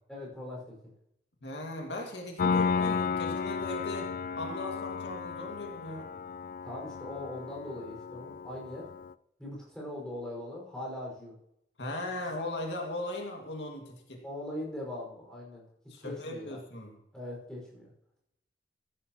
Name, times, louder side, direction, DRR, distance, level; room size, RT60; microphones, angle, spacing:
voice 1, 0.1-0.8 6.6-8.9 9.4-11.3 14.2-15.6 16.0-16.6 17.1-17.9, left 1 dB, 5° left, -3 dB, 5.6 m, -40 dB
voice 2, 1.4-4.1 4.4-6.1 11.8-14.2 15.9-16.9, left 1 dB, 80° left, 1 dB, 2.3 m, -38 dB
Piano, 2.4-9.1, left 5 dB, 50° left, 0.3 m, -33 dB
14.5 x 12.0 x 3.1 m, 0.79 s
head